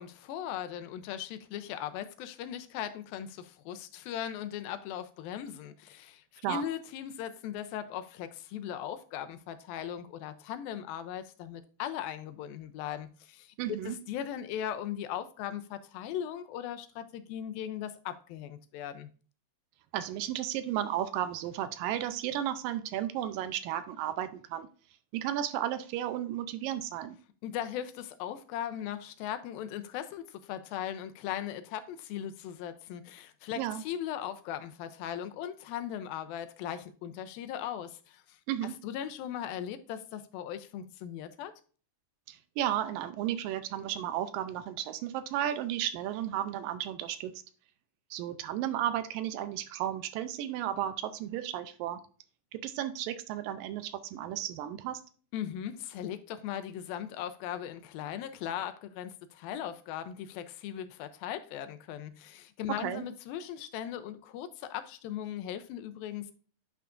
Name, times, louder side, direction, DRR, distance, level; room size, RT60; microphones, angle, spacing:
voice 1, 0.0-13.5 13.9-19.1 27.4-38.4 38.8-41.5 55.3-66.3, left 10 dB, 85° left, 2.5 m, -38 dB
voice 2, 13.6-14.0 19.9-24.7 25.1-27.2 33.6-33.8 38.5-38.7 42.3-47.3 48.1-52.0 52.5-55.0 62.8-63.0, right 11 dB, 80° right, 2.2 m, -33 dB
9.0 x 5.8 x 2.5 m
omnidirectional pair, 4.1 m